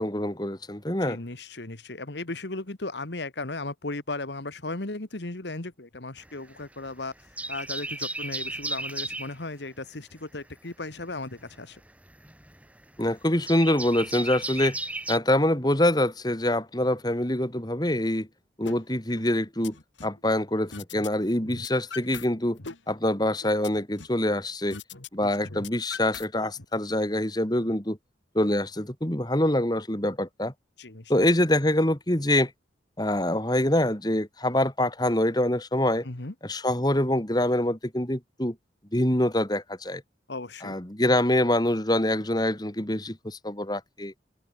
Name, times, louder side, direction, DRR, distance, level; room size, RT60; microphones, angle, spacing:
voice 1, 0.0-1.2 13.0-14.8 15.1-18.3 18.6-19.8 20.0-22.6 22.9-24.8 25.1-28.0 28.3-30.5 31.1-32.5 33.0-36.1 36.4-38.5 38.9-40.0 40.6-44.1, left 1 dB, 20° left, 2.4 m, -25 dB
voice 2, 1.0-7.1 7.5-11.8 19.1-19.2 25.2-25.6 30.8-31.1 36.0-36.3 40.3-40.8, left 2 dB, 70° left, 1.8 m, -36 dB
sound 1, 6.2-6.9 7.2-9.4 11.0-15.2, right 2 dB, 5° right, 7.6 m, -34 dB
sound 2, 18.7-18.8 19.2-20.2 20.7-21.1 21.4-22.3 22.6-24.2 24.7-25.1 25.4-26.7, left 4 dB, 90° left, 2.3 m, -41 dB
open air
head